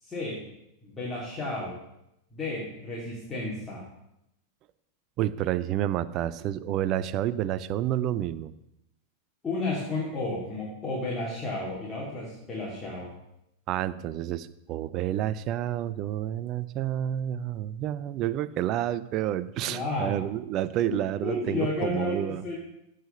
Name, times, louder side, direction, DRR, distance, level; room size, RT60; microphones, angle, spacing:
voice 1, 0.0-0.5 0.8-1.8 2.3-3.8 9.4-13.1 19.6-20.2 20.9-22.5, left 2 dB, 15° left, -6 dB, 2.9 m, -32 dB
voice 2, 5.2-8.5 13.7-22.4, right 12 dB, 35° right, 17 dB, 0.5 m, -29 dB
15.5 x 5.1 x 6.8 m, 0.84 s
figure-of-eight pair, 90°, 0 cm